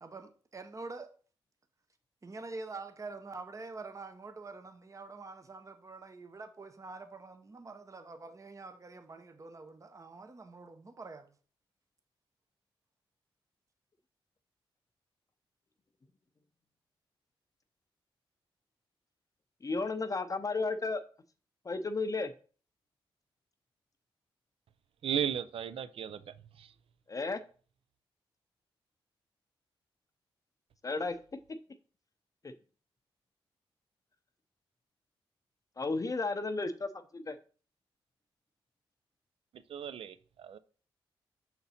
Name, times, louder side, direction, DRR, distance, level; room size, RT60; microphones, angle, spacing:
voice 1, 0.0-1.1 2.2-11.3, right 3 dB, 30° right, 0.8 m, -46 dB
voice 2, 19.6-21.0 21.6-22.3 27.1-27.4 30.8-31.2 32.4-32.5 35.8-37.4, left 3 dB, 35° left, 0.6 m, -33 dB
voice 3, 25.0-26.7 39.5-40.6, right 9 dB, 65° right, 0.5 m, -36 dB
5.8 x 3.9 x 4.1 m
cardioid pair, 60°, 10 cm